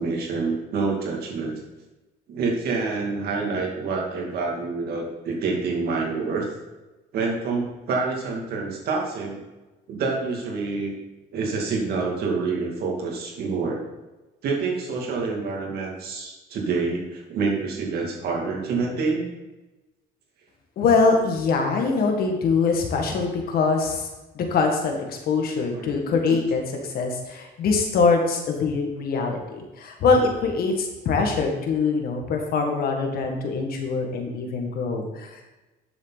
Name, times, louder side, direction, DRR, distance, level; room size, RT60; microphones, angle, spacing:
voice 1, 0.0-1.5 2.3-6.5 7.1-9.4 9.9-10.9 11.3-13.8 14.4-19.3 25.7-26.0 26.3-26.4, right 4 dB, 70° right, -1 dB, 2.5 m, -27 dB
voice 2, 20.8-24.1 24.3-26.6 26.9-35.4, left 4 dB, 60° left, 3 dB, 1.9 m, -23 dB
10.5 x 7.1 x 4.1 m, 1.1 s
cardioid pair, 110°, 17 cm